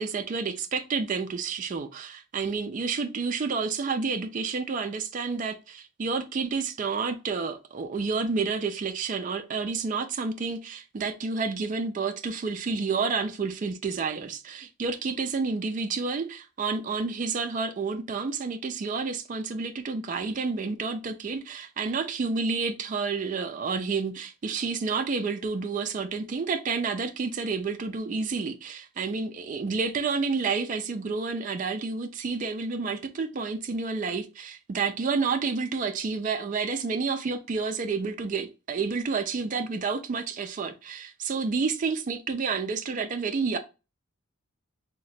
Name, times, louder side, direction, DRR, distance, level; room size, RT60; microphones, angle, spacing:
voice 1, 0.0-43.6, right 4 dB, 35° right, 0.3 m, -30 dB
2.8 x 2.1 x 4.0 m
head